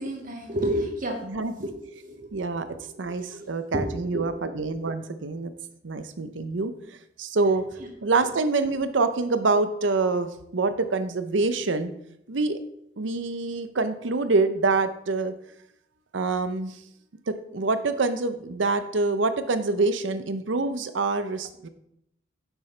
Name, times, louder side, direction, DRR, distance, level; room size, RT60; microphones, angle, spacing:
voice 1, 0.0-1.2 1.6-3.5 3.7-4.2 7.8-7.9, right 1 dB, 45° right, 0 dB, 1.8 m, -31 dB
voice 2, 2.3-2.7 3.0-5.5 5.8-6.7 7.2-7.6 8.0-11.9 12.3-12.6 13.0-15.3 16.1-16.7 17.3-21.7, right 3 dB, 75° right, 10 dB, 0.7 m, -26 dB
9.6 x 7.1 x 3.3 m, 0.77 s
head